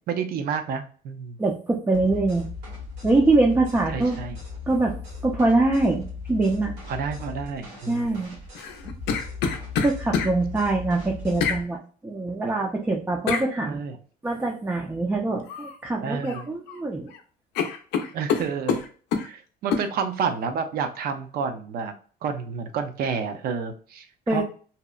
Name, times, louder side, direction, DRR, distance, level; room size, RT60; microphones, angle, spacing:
voice 1, 0.0-1.4 3.9-4.4 6.9-8.2 13.6-14.0 16.0-16.5 18.1-18.8 19.2-21.9 22.2-24.4, right 6 dB, 65° right, 8 dB, 0.5 m, -30 dB
voice 2, 1.4-2.5 3.0-4.2 4.7-5.0 5.2-6.7 7.9-8.4 9.8-13.8 14.2-17.1 24.3-24.4, right 2 dB, 15° right, 0 dB, 0.4 m, -23 dB
sound 1, 1.9-11.6, left 4 dB, 85° right, 1.2 m, -38 dB
sound 2, 8.5-10.3 11.4-11.6 13.3-13.5 15.5-15.8 16.1-16.8 17.1-17.2 17.5-19.3 19.7-19.9, left 6 dB, 80° left, 0.5 m, -26 dB
2.8 x 2.0 x 2.3 m, 0.40 s
cardioid pair, 110°, 17 cm